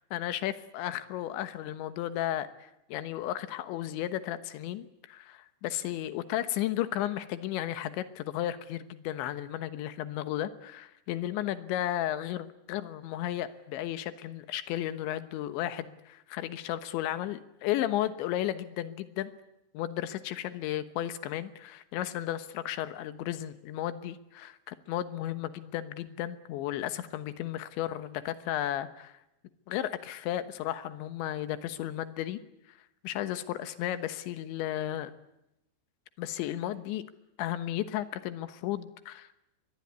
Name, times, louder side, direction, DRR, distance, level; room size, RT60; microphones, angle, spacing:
voice 1, 0.1-2.5 2.9-19.3 19.8-29.1 29.7-32.4 33.0-35.1 36.2-37.0 37.4-39.3, left 12 dB, 75° left, 11 dB, 3.5 m, -34 dB
24.0 x 20.5 x 9.5 m, 0.87 s
omnidirectional pair, 5.4 m